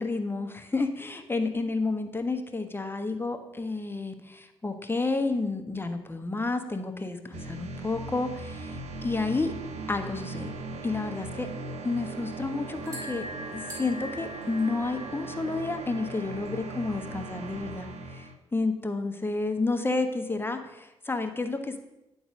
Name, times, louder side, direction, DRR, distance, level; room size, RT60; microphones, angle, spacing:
voice 1, 0.0-9.5 9.9-10.5 10.8-11.5 11.8-13.3 13.5-21.8, left 3 dB, 20° left, 6 dB, 1.2 m, -30 dB
sound 1, 7.3-18.3, right 3 dB, 75° right, 0.9 m, -39 dB
sound 2, 12.7-17.7, equal, 30° right, 3.1 m, -44 dB
10.0 x 4.0 x 6.1 m, 0.94 s
supercardioid pair, 50°, 11 cm